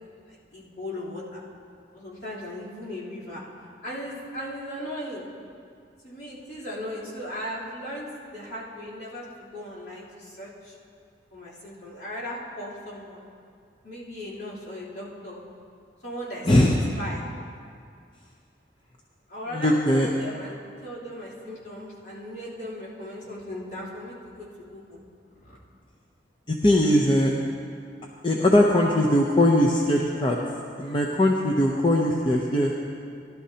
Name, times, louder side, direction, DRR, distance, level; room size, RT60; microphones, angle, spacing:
voice 1, 0.0-1.4 1.9-3.4 3.8-5.2 6.0-8.1 8.3-9.2 9.5-10.7 11.3-13.2 13.8-15.4 16.0-17.2 19.3-25.0 25.3-25.5, equal, 65° left, -9 dB, 3.4 m, -37 dB
voice 2, 16.4-16.8 19.5-20.1 26.5-27.4 28.2-30.4 30.8-32.7, left 1 dB, 25° left, -1 dB, 0.6 m, -20 dB
17.5 x 11.5 x 2.9 m, 2.3 s
head